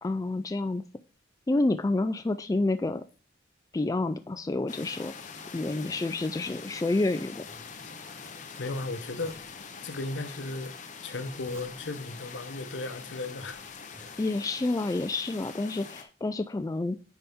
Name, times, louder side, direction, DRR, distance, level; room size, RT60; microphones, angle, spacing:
voice 1, 0.0-0.8 1.5-3.0 3.7-5.1 5.5-7.5 14.2-17.0, left 2 dB, 20° left, 0.3 m, -29 dB
sound 1, 4.7-16.0, left 5 dB, 45° left, 0.8 m, -44 dB
sound 2, 5.4-6.8 7.2-8.1 9.0-9.8 11.0-12.1 12.8-12.9 13.4-14.7, equal, 15° right, 1.3 m, -57 dB
voice 2, 8.6-9.4 9.8-10.8 11.0-13.6 14.0-14.2, left 2 dB, 85° left, 0.9 m, -35 dB
9.5 x 4.2 x 3.6 m
head